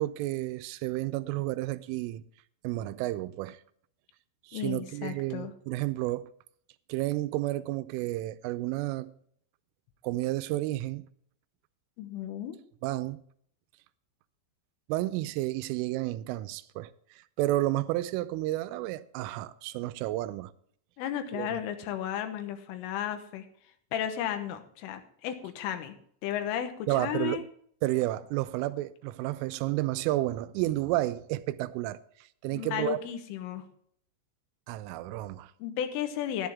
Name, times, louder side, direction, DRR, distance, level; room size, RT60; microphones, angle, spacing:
voice 1, 0.0-2.2 2.6-3.6 4.4-6.3 6.9-9.1 10.0-11.1 12.8-13.2 14.9-20.5 21.3-21.6 26.9-27.5 27.8-33.0 34.7-35.5, right 17 dB, 90° right, 3.1 m, -31 dB
voice 2, 4.5-5.5 12.0-12.6 21.0-23.5 23.9-26.0 26.2-27.4 32.5-33.7 35.6-36.5, left 10 dB, 85° left, 3.6 m, -34 dB
11.5 x 11.0 x 3.5 m
omnidirectional pair, 5.6 m